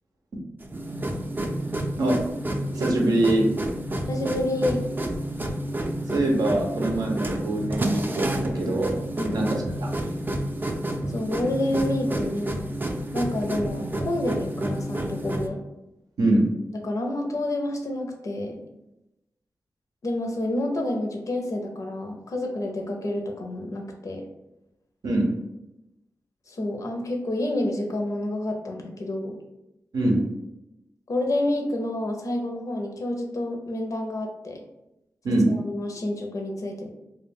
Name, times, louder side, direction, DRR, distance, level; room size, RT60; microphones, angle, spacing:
sound 1, 0.6-15.5, right 1 dB, 30° right, 0.4 m, -29 dB
voice 1, 2.7-3.5 6.1-9.0 9.3-9.9 16.2-16.4 25.0-25.3 29.9-30.2 35.2-35.5, right 1 dB, 85° right, 0 dB, 0.6 m, -23 dB
voice 2, 4.1-4.8 9.2-9.5 11.1-12.7 13.1-15.6 16.8-18.6 20.0-24.2 26.5-29.4 31.1-34.6 35.5-36.9, left 1 dB, 60° left, 2 dB, 0.5 m, -29 dB
2.2 x 2.2 x 3.3 m, 0.92 s
cardioid pair, 50°, 6 cm